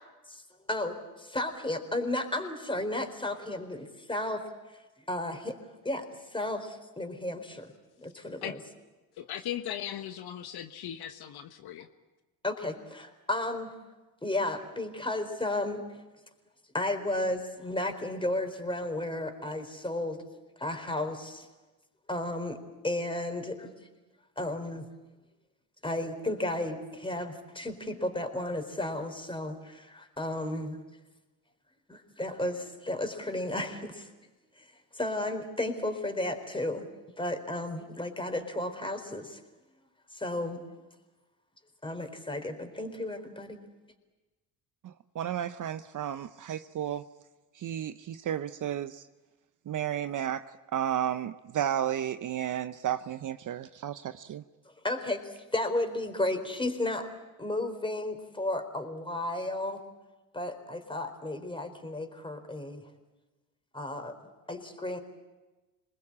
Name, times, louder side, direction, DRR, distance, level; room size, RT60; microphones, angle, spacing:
voice 1, 0.7-4.5 5.1-5.6 5.8-6.1 6.3-7.7 8.0-8.6 12.4-13.7 14.2-15.8 16.7-20.2 20.6-21.5 22.1-22.6 22.8-23.7 24.4-24.9 25.8-30.8 31.9-34.1 34.6-34.7 34.9-36.9 37.2-39.4 40.1-40.6 41.8-43.6 54.8-57.1 57.4-59.8 60.3-62.8 63.7-64.2 64.5-65.0, left 1 dB, 10° left, 6 dB, 4.2 m, -33 dB
voice 2, 9.2-11.9, left 11 dB, 55° left, 8 dB, 1.4 m, -38 dB
voice 3, 44.8-47.0 47.5-49.0 49.7-50.5 50.7-54.4, right 10 dB, 40° right, 12 dB, 0.9 m, -33 dB
27.5 x 20.5 x 8.7 m, 1.1 s
hypercardioid pair, 65°, 46 cm